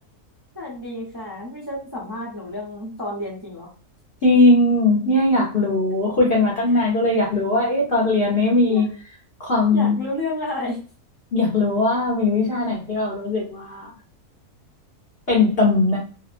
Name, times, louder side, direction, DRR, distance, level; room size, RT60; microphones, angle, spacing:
voice 1, 0.5-3.7 6.7-6.8 8.7-8.8 9.7-10.8, left 1 dB, 25° right, -6 dB, 0.5 m, -31 dB
voice 2, 4.2-8.9 9.4-10.0 11.3-13.9 15.3-16.0, left 2 dB, 50° left, -4 dB, 0.7 m, -19 dB
2.8 x 2.0 x 2.4 m, 0.38 s
omnidirectional pair, 1.7 m